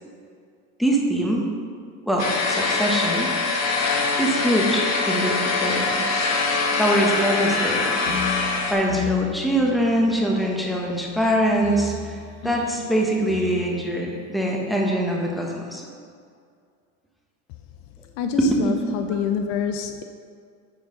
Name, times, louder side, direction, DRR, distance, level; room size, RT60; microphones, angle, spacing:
voice 1, 0.8-1.5 2.1-3.3 4.2-6.1 6.8-8.0 8.7-15.9 18.4-18.7, right 1 dB, ahead, -1 dB, 1.1 m, -23 dB
sound 1, 2.2-8.7, left 4 dB, 40° left, 1.3 m, -23 dB
sound 2, 8.1-15.6, left 5 dB, 75° left, 1.8 m, -35 dB
voice 2, 18.2-20.0, left 7 dB, 55° left, 7 dB, 0.6 m, -27 dB
9.3 x 4.6 x 3.9 m, 2.3 s
supercardioid pair, 110°, 40 cm